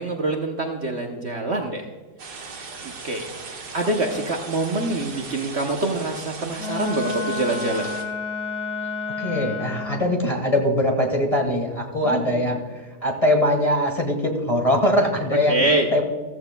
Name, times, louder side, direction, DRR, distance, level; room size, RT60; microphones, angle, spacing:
voice 1, 0.0-1.9 3.0-3.3 3.7-7.9 12.0-12.5 15.5-15.9, right 2 dB, 50° right, 2 dB, 1.0 m, -25 dB
sound 1, 2.2-8.0, right 4 dB, 75° right, 2.0 m, -38 dB
Wind instrument woodwind instrument, 6.6-10.2, left 4 dB, 45° left, 2.7 m, -30 dB
voice 2, 9.2-16.0, left 1 dB, 20° left, 2 dB, 1.5 m, -22 dB
15.0 x 14.5 x 2.3 m, 1.4 s
omnidirectional pair, 1.7 m